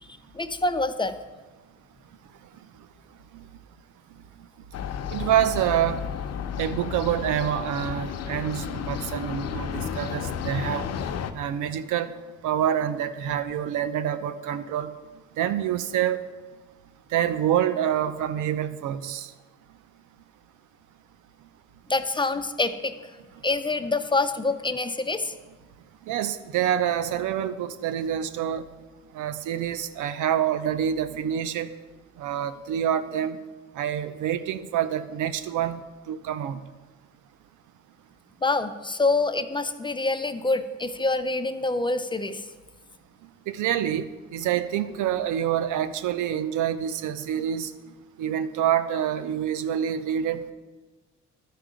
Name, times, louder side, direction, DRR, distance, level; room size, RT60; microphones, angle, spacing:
voice 1, 0.3-1.1 21.9-22.9 23.4-25.3 38.4-42.5, left 3 dB, 15° left, 10 dB, 0.4 m, -26 dB
sound 1, 4.7-11.3, left 7 dB, 55° left, 0.6 m, -32 dB
voice 2, 5.1-6.0 6.6-10.9 11.3-12.1 12.4-14.9 15.4-16.3 17.1-19.3 26.1-28.6 29.1-31.7 32.2-33.4 33.8-36.6 43.5-47.7 48.2-50.5, right 10 dB, 85° right, 12 dB, 0.6 m, -27 dB
12.0 x 4.6 x 5.0 m, 1.3 s
cardioid pair, 90°, 30 cm